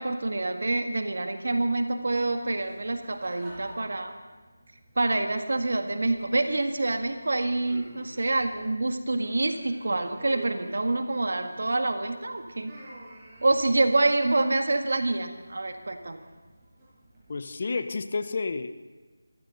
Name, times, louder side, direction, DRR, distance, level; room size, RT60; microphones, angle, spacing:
voice 1, 0.0-4.1 4.9-12.7 13.4-16.2, right 2 dB, 65° right, 6 dB, 1.8 m, -27 dB
sound 1, 1.9-17.5, right 1 dB, 20° right, 6.1 m, -50 dB
voice 2, 17.3-18.7, left 4 dB, 45° left, 11 dB, 0.9 m, -30 dB
24.0 x 14.5 x 3.9 m, 1.3 s
figure-of-eight pair, 160°, 0 cm